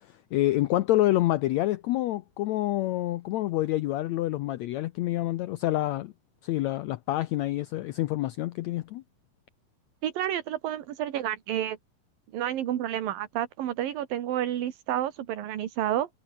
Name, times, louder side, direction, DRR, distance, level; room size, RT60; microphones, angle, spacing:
voice 1, 0.3-6.1 6.4-9.0, left 15 dB, 90° left, 1.5 m, -27 dB
voice 2, 10.0-11.8 12.3-16.1, right 11 dB, 80° right, 3.4 m, -30 dB
omnidirectional pair, 4.0 m